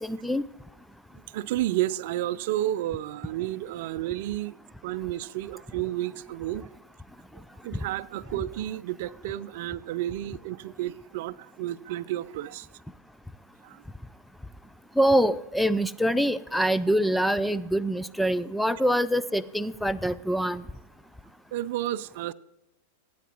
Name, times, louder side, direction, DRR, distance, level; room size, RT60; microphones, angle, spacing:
voice 1, 0.0-0.4 15.0-20.6, equal, ahead, 0.4 m, -25 dB
voice 2, 1.3-6.7 7.6-12.7 13.6-13.8 21.5-22.3, right 14 dB, 60° right, 0.5 m, -31 dB
16.5 x 9.3 x 3.0 m
hypercardioid pair, 125°, 0 cm